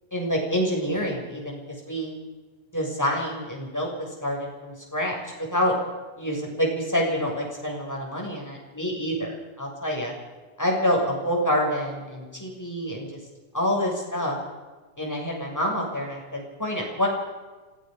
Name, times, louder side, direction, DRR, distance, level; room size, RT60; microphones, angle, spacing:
voice 1, 0.1-1.6 1.9-2.1 2.7-3.9 4.2-5.1 5.5-5.7 6.2-9.3 9.6-10.1 10.6-13.2 13.5-14.3 15.0-17.1, equal, 5° left, -2 dB, 6.4 m, -27 dB
26.5 x 18.5 x 5.4 m, 1.3 s
omnidirectional pair, 3.8 m